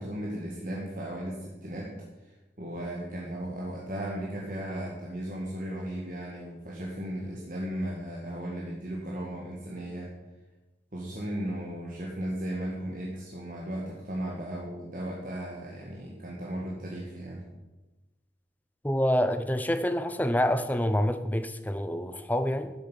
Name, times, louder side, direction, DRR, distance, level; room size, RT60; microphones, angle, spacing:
voice 1, 0.0-10.1 10.9-17.4, right 1 dB, 50° right, 1.7 m, -36 dB
voice 2, 18.8-22.7, equal, 10° left, 0.6 m, -27 dB
11.5 x 7.7 x 5.7 m
head